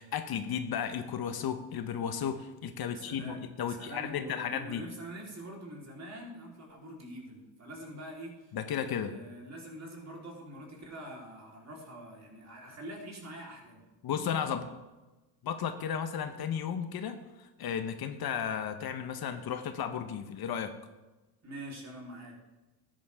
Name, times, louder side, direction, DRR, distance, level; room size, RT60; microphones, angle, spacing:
voice 1, 0.0-4.8 8.5-9.2 14.0-14.7 15.4-20.7, left 8 dB, 55° left, 8 dB, 1.1 m, -34 dB
voice 2, 2.8-13.8 21.4-22.4, right 1 dB, 35° right, -1 dB, 3.9 m, -45 dB
13.5 x 10.5 x 3.6 m, 1.1 s
cardioid pair, 90°, 44 cm